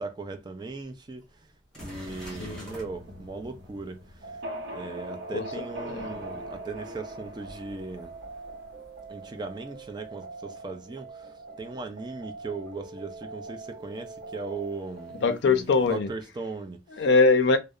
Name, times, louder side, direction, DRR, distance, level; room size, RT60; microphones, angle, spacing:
voice 1, 0.0-4.4 4.7-8.1 9.1-15.2 15.9-17.0, right 3 dB, 25° right, 0.4 m, -38 dB
sound 1, 0.6-0.7 1.2-1.3 1.7-2.9 8.0-8.1 10.9-11.0 12.7-12.8 14.1-16.0, equal, 5° left, 1.0 m, -49 dB
sound 2, 1.8-9.4, equal, 75° right, 0.7 m, -42 dB
voice 2, 2.4-2.7 5.3-6.2 15.1-16.1 16.9-17.6, left 4 dB, 65° left, 0.4 m, -23 dB
sound 3, 4.2-15.3, right 3 dB, 45° right, 1.1 m, -44 dB
2.7 x 2.0 x 2.3 m
head